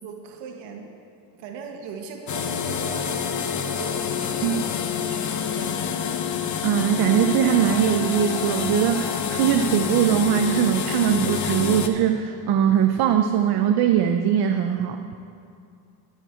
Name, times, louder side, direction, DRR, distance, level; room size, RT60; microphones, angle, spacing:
voice 1, 0.0-1.0 1.3-3.3 3.6-4.7 5.1-6.1, right 6 dB, 80° right, 2 dB, 1.4 m, -39 dB
sound 1, 2.3-11.9, left 7 dB, 45° left, 0.8 m, -27 dB
Wind instrument woodwind instrument, 5.9-10.1, left 1 dB, 15° left, 2.4 m, -44 dB
voice 2, 6.6-15.0, right 9 dB, 60° right, 6 dB, 0.7 m, -21 dB
19.0 x 8.2 x 4.4 m, 2.4 s
cardioid pair, 150°, 42 cm